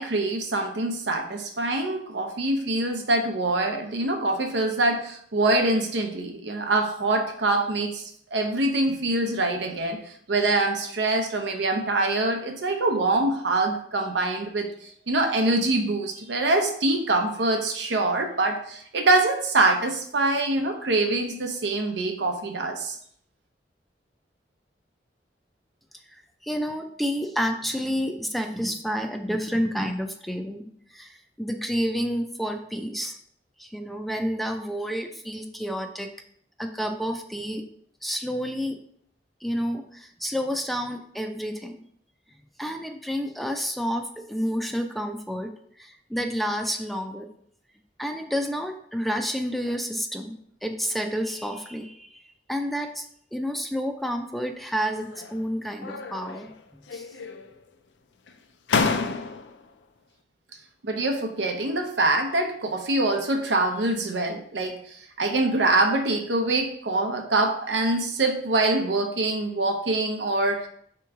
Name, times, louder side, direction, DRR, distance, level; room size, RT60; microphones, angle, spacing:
voice 1, 0.0-8.0 8.3-10.0 10.3-14.7 15.1-23.0 60.8-70.7, right 2 dB, 90° right, 4 dB, 0.7 m, -24 dB
voice 2, 26.1-30.6 30.9-33.2 33.6-36.1 36.6-37.6 38.0-38.8 39.4-41.8 42.6-45.5 45.8-47.3 48.0-52.2 52.5-53.1 53.3-57.1, equal, ahead, 5 dB, 0.3 m, -30 dB
sound 1, 54.8-55.4 55.8-56.6 56.9-57.6 58.3-58.4 58.7-59.6, left 4 dB, 80° left, 0.4 m, -29 dB
3.5 x 3.0 x 4.7 m, 0.65 s
head